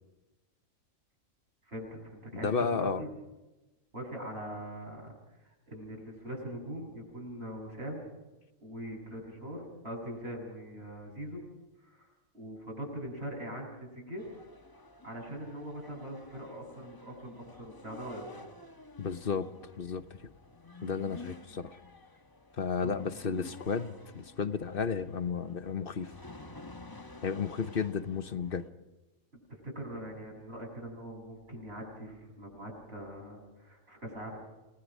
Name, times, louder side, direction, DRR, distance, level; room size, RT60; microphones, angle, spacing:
voice 1, 1.7-3.1 3.9-5.1 5.7-8.1 8.6-11.5 11.8-12.1 12.3-14.2 15.0-18.2 22.8-23.2 29.5-34.4, right 1 dB, 50° right, -1 dB, 7.5 m, -42 dB
voice 2, 2.4-3.0 19.0-19.5 19.8-20.3 20.8-21.8 22.6-26.1 27.2-28.7, left 5 dB, 45° left, 12 dB, 1.0 m, -33 dB
sound 1, 14.2-28.7, left 2 dB, 15° left, 1.1 m, -51 dB
29.0 x 19.0 x 6.3 m, 1.1 s
omnidirectional pair, 1.4 m